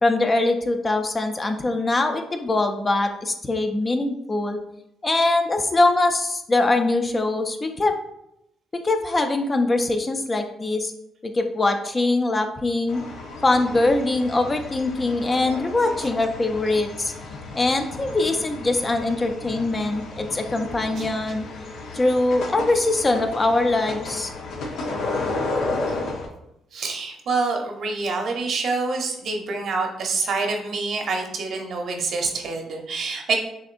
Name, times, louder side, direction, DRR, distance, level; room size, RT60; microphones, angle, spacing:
voice 1, 0.0-4.6 5.0-7.9 8.8-10.9 11.2-13.0 13.4-17.1 17.5-21.5 21.9-24.3, left 2 dB, 25° left, 5 dB, 0.5 m, -22 dB
sound 1, 12.9-26.3, left 2 dB, 80° left, 0.7 m, -33 dB
voice 2, 26.7-33.3, right 4 dB, 65° right, 2 dB, 0.8 m, -26 dB
6.4 x 2.5 x 2.5 m, 0.82 s
cardioid pair, 90°, 0 cm